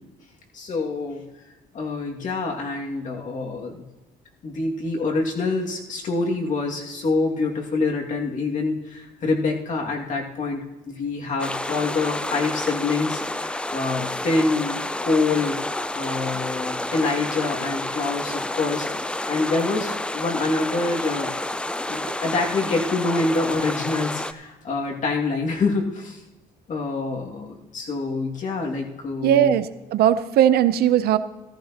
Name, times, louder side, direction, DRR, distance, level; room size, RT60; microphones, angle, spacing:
voice 1, 0.5-1.2 1.7-3.8 4.4-15.6 15.9-18.9 19.3-21.3 21.9-26.2 26.7-29.6, left 3 dB, 50° left, 0 dB, 2.3 m, -26 dB
sound 1, 11.4-24.3, left 1 dB, 5° left, 0.4 m, -29 dB
voice 2, 29.2-31.2, right 11 dB, 65° right, 13 dB, 0.6 m, -19 dB
14.0 x 14.0 x 2.9 m, 1.1 s
cardioid pair, 110°, 17 cm